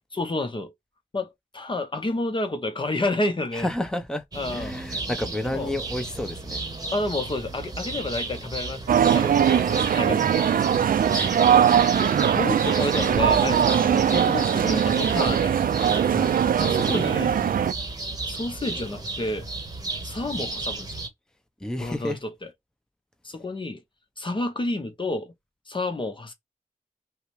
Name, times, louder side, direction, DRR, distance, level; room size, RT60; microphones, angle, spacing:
voice 1, 0.1-0.7 1.1-3.7 4.3-4.8 5.5-5.7 6.9-10.5 11.1-11.2 12.0-15.8 16.6-17.3 18.3-19.5 20.0-21.0 21.8-22.5 23.2-23.8 24.2-25.3 25.7-26.3, left 2 dB, 35° left, 0.8 m, -30 dB
voice 2, 3.5-4.2 4.5-6.6 16.1-16.3 21.6-22.2, left 1 dB, 5° left, 0.7 m, -30 dB
sound 1, 4.3-21.1, right 2 dB, 25° right, 1.0 m, -33 dB
sound 2, 8.9-17.7, right 8 dB, 90° right, 0.4 m, -21 dB
5.6 x 2.2 x 3.2 m
wide cardioid pair, 90°, 14 cm